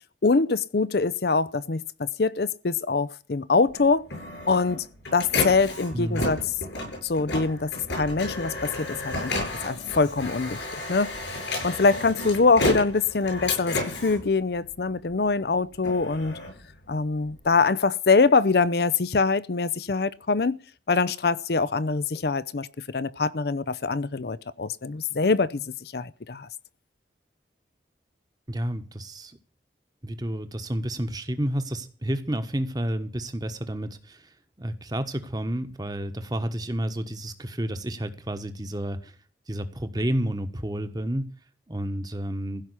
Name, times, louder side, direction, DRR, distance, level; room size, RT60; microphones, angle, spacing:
voice 1, 0.2-4.0 4.5-4.9 5.1-6.4 7.0-16.4 16.9-20.6 20.9-26.5, left 4 dB, 60° left, 0.6 m, -24 dB
Printer, 3.7-15.1 15.6-17.4, left 2 dB, 90° left, 7.8 m, -32 dB
voice 2, 5.9-6.3 28.5-29.4 30.0-34.3 34.6-39.1 39.5-41.3 41.7-42.6, right 1 dB, 20° right, 1.2 m, -30 dB
15.5 x 5.8 x 9.8 m
head